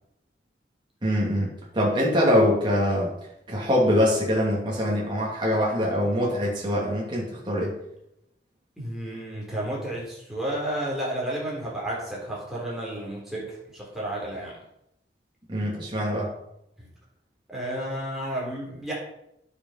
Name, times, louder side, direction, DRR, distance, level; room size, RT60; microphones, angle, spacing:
voice 1, 1.0-3.1 3.5-7.8 15.5-16.3, equal, 25° right, -4 dB, 2.8 m, -23 dB
voice 2, 8.8-13.5 13.7-14.6 16.8-16.9 17.5-18.9, right 1 dB, ahead, -6 dB, 3.8 m, -32 dB
10.5 x 7.0 x 5.8 m, 0.80 s
head